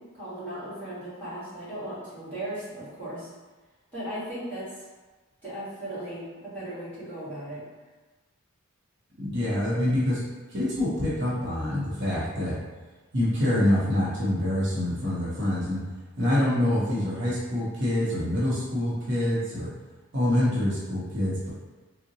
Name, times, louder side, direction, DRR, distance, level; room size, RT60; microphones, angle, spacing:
voice 1, 0.1-3.3 3.9-4.9 5.4-7.6, right 1 dB, 10° left, -13 dB, 1.3 m, -37 dB
voice 2, 9.2-10.2 10.5-12.6 13.1-15.8 16.2-19.7 20.1-21.5, left 1 dB, 55° right, -7 dB, 0.8 m, -26 dB
3.6 x 2.1 x 2.7 m, 1.2 s
head